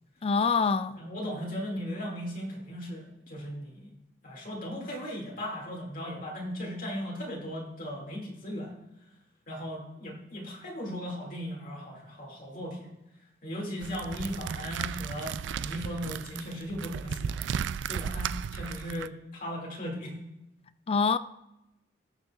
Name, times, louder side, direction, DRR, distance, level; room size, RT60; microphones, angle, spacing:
voice 1, 0.2-1.0 20.9-21.2, left 5 dB, 35° left, 0.4 m, -25 dB
voice 2, 1.0-3.9 4.2-8.7 9.5-12.9 13.4-17.5 17.9-20.1, equal, 50° left, 2.2 m, -37 dB
sound 1, 13.8-19.1, right 7 dB, 85° right, 0.3 m, -35 dB
19.0 x 6.7 x 2.4 m
head